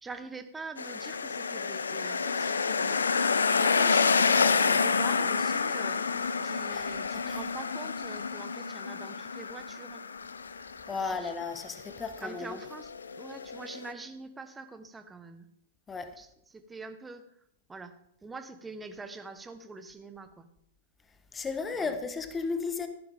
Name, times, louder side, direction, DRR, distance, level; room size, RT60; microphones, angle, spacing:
voice 1, 0.0-3.0 3.6-10.0 10.9-11.3 12.2-15.5 16.2-17.3 17.7-17.9 18.2-20.5 21.7-22.0, right 3 dB, 10° right, 9 dB, 1.1 m, -45 dB
sound 1, 0.8-13.9, left 5 dB, 85° left, 0.6 m, -29 dB
voice 2, 7.1-7.5 10.9-12.6 15.9-16.1 21.3-22.9, left 4 dB, 15° left, 9 dB, 1.2 m, -34 dB
14.5 x 11.0 x 3.6 m, 0.77 s
hypercardioid pair, 110°, 0 cm